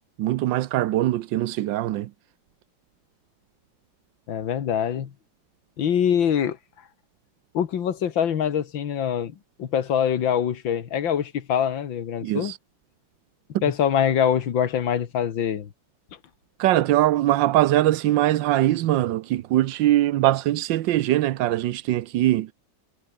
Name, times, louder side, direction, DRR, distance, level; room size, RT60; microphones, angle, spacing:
voice 1, 0.2-2.1 12.2-12.6 16.6-22.5, right 14 dB, 75° right, 1.4 m, -22 dB
voice 2, 4.3-5.1 5.8-6.6 7.5-12.5 13.6-15.7, left 8 dB, 75° left, 2.2 m, -24 dB
omnidirectional pair, 2.1 m